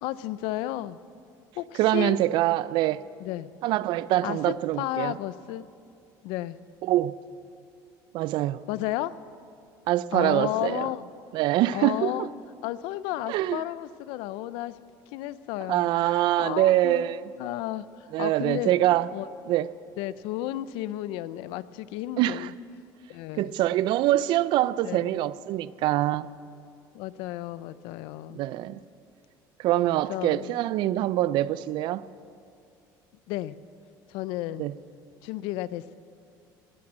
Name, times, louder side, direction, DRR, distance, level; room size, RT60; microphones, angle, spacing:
voice 1, 0.0-1.0 1.6-2.2 3.2-3.5 4.2-5.7 6.2-6.6 8.7-9.1 10.1-11.1 11.7-12.3 12.6-14.8 15.1-17.1 17.4-17.8 18.2-18.7 19.1-19.3 20.0-22.5 23.1-23.5 24.8-25.0 26.9-28.4 30.1-30.5 33.3-33.6 34.1-34.7 35.2-35.9, left 15 dB, 85° left, 0.5 m, -33 dB
voice 2, 1.8-3.0 3.6-5.2 6.8-7.2 8.1-8.6 9.9-10.9 11.3-12.3 13.3-13.6 15.7-17.2 18.1-19.1 19.5-19.7 22.2-22.5 23.4-26.3 28.3-28.8 29.6-32.0 34.6-34.7, right 14 dB, 65° right, 0.4 m, -24 dB
19.5 x 8.7 x 7.5 m
cardioid pair, 130°, 9 cm